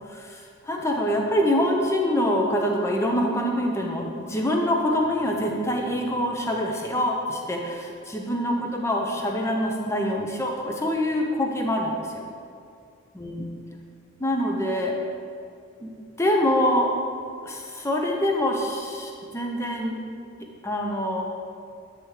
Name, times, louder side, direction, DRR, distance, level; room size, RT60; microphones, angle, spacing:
voice 1, 0.1-12.2 13.1-13.5 14.2-14.9 15.8-16.9 17.4-20.0 20.6-21.2, equal, 15° left, 1 dB, 0.4 m, -25 dB
8.8 x 3.4 x 3.1 m, 2.4 s
head